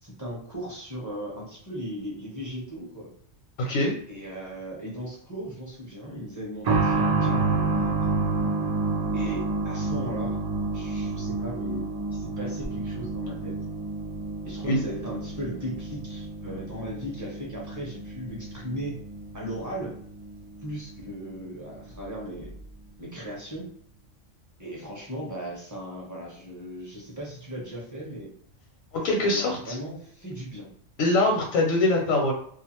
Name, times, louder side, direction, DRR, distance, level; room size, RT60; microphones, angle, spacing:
voice 1, 0.0-3.1 4.1-8.0 9.1-10.4 10.7-13.6 14.4-19.0 19.3-20.0 20.6-22.5 23.0-23.7 24.6-28.3 29.2-30.7, equal, 20° right, -3 dB, 0.7 m, -37 dB
voice 2, 3.6-3.9 14.6-14.8 28.9-29.8 31.0-32.3, left 2 dB, 85° left, 0 dB, 1.1 m, -23 dB
sound 1, 6.6-21.1 21.3-21.4 22.4-22.5, right 3 dB, 90° right, 0.3 m, -29 dB
2.4 x 2.4 x 2.9 m, 0.62 s
omnidirectional pair, 1.3 m